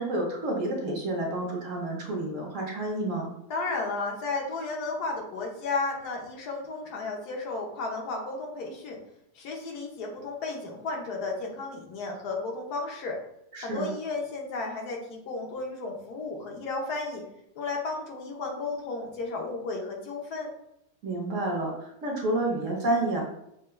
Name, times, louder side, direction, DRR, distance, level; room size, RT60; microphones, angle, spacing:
voice 1, 0.0-3.3 13.5-13.9 21.0-23.2, right 1 dB, 55° right, -1 dB, 1.1 m, -29 dB
voice 2, 3.5-9.0 9.3-13.2 13.6-17.2 17.5-20.5, left 3 dB, 75° left, 0 dB, 1.3 m, -33 dB
6.4 x 2.2 x 2.2 m, 0.80 s
omnidirectional pair, 1.7 m